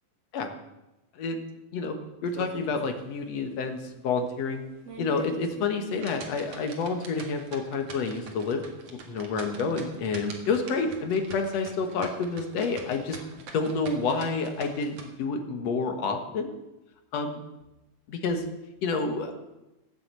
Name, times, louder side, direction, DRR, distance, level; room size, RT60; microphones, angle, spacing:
voice 1, 2.2-3.8 4.0-4.6 5.0-8.6 8.9-16.5 17.1-17.4 18.1-18.4 18.8-19.3, left 4 dB, 55° left, 6 dB, 2.3 m, -29 dB
sound 1, 2.3-3.0 3.4-3.5 4.0-4.1 4.7-15.1, right 4 dB, 50° right, 2.5 m, -44 dB
16.0 x 8.2 x 8.2 m, 0.98 s
omnidirectional pair, 3.9 m